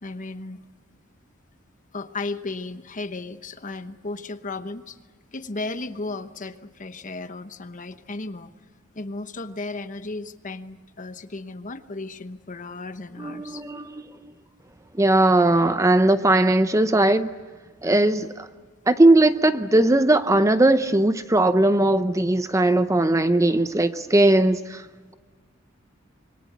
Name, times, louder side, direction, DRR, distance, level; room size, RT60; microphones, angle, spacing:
voice 1, 0.0-0.6 1.9-5.0 5.3-8.5 8.9-13.6, left 3 dB, 40° left, 1.0 m, -35 dB
voice 2, 13.2-14.3 14.9-17.3 17.8-18.5 18.9-24.9, right 1 dB, 15° right, 0.7 m, -19 dB
26.5 x 23.0 x 8.1 m
head